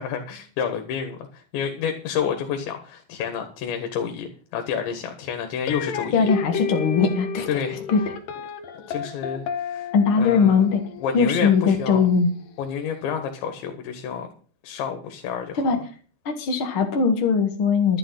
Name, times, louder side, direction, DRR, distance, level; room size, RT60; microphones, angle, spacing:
voice 1, 0.0-6.3 7.5-7.9 8.9-9.9 10.1-10.6 11.0-12.0 12.6-14.3 14.6-15.7, left 7 dB, 80° left, 6 dB, 3.9 m, -29 dB
sound 1, 5.7-12.8, left 7 dB, 65° left, 2.5 m, -33 dB
voice 2, 6.1-7.6 7.9-8.1 9.9-10.8 11.1-12.3 15.6-15.8 16.2-18.0, left 5 dB, 50° left, 3 dB, 1.6 m, -20 dB
12.0 x 9.9 x 5.6 m, 0.41 s
omnidirectional pair, 5.1 m